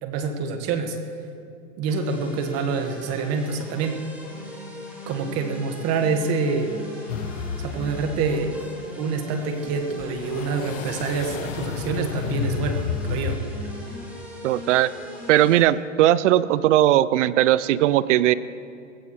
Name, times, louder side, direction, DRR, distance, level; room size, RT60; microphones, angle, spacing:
voice 1, 0.0-1.0 1.8-4.0 5.1-6.7 7.6-8.5 9.0-13.4, right 4 dB, 40° right, 5 dB, 1.7 m, -26 dB
sound 1, 1.9-15.6, equal, 5° right, 4.6 m, -40 dB
sound 2, 7.1-8.2 8.6-8.7 10.0-13.4, left 7 dB, 75° left, 1.3 m, -31 dB
voice 2, 14.4-14.9 15.3-18.3, right 13 dB, 65° right, 17 dB, 0.6 m, -18 dB
20.0 x 16.0 x 3.2 m, 2.5 s
hypercardioid pair, 130°, 40 cm